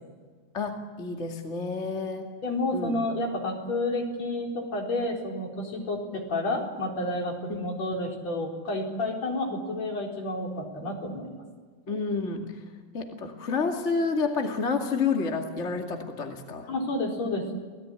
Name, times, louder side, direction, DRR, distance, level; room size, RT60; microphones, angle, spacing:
voice 1, 0.5-2.3 2.7-2.9 7.5-7.7 11.9-12.6 12.9-16.7, left 4 dB, 25° left, 3 dB, 1.6 m, -29 dB
voice 2, 2.4-11.4 16.7-17.5, left 2 dB, 40° left, 0 dB, 5.1 m, -30 dB
28.0 x 18.0 x 9.8 m, 1.5 s
omnidirectional pair, 4.6 m